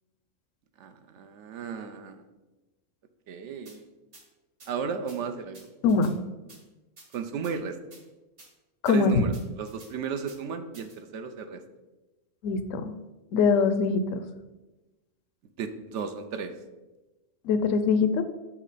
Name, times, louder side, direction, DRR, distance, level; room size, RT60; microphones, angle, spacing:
voice 1, 0.8-2.2 3.3-3.8 4.7-5.7 7.1-7.8 8.9-11.6 15.6-16.5, right 6 dB, 70° right, 8 dB, 0.9 m, -34 dB
sound 1, 3.6-3.8 4.1-4.2 4.6-4.7 5.1-5.2 5.5-6.1 6.5-6.6 7.0-7.5 7.9-8.0 8.4-8.5 8.8-9.0 9.3-9.9 10.3-10.4 10.7-11.0, right 2 dB, 50° right, 1.5 m, -51 dB
voice 2, 5.8-6.1 8.8-9.3 12.4-12.9 13.3-14.2 17.4-18.2, left 4 dB, 80° left, 10 dB, 1.0 m, -23 dB
5.9 x 5.7 x 4.0 m, 1.1 s
omnidirectional pair, 1.3 m